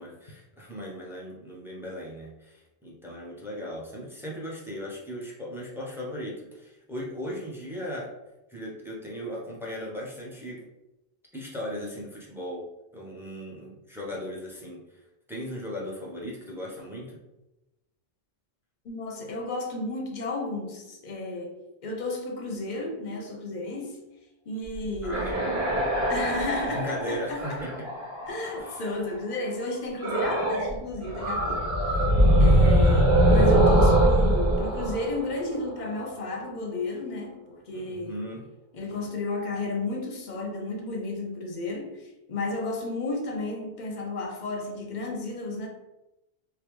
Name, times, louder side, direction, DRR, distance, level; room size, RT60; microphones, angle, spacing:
voice 1, 0.0-8.1 8.5-10.6 11.3-12.7 12.9-15.0 15.3-17.2 25.0-25.5 26.7-27.9 28.5-28.9 37.7-38.5, equal, 5° right, 0.5 m, -37 dB
voice 2, 18.8-21.5 21.8-24.0 24.5-25.2 26.1-27.6 28.3-31.7 32.4-38.2 38.7-45.7, left 2 dB, 55° left, 0.6 m, -33 dB
sound 1, 24.7-28.9 30.0-30.8 31.0-35.9, right 1 dB, 85° right, 1.1 m, -22 dB
3.3 x 2.2 x 3.0 m
omnidirectional pair, 1.0 m